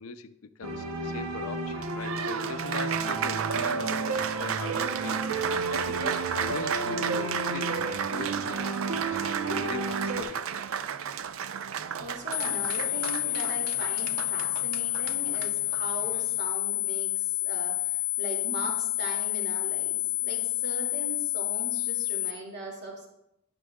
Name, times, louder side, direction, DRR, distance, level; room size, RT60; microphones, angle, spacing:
voice 1, 0.0-10.4, left 5 dB, 85° left, 12 dB, 0.5 m, -41 dB
sound 1, 0.6-10.2, right 3 dB, 90° right, 0.9 m, -32 dB
Applause, 1.7-16.4, right 8 dB, 70° right, 0.4 m, -34 dB
voice 2, 12.0-23.1, right 1 dB, 55° right, -1 dB, 2.5 m, -39 dB
sound 2, 12.3-22.3, left 23 dB, 20° left, 0.5 m, -29 dB
11.0 x 9.8 x 2.3 m, 0.84 s
head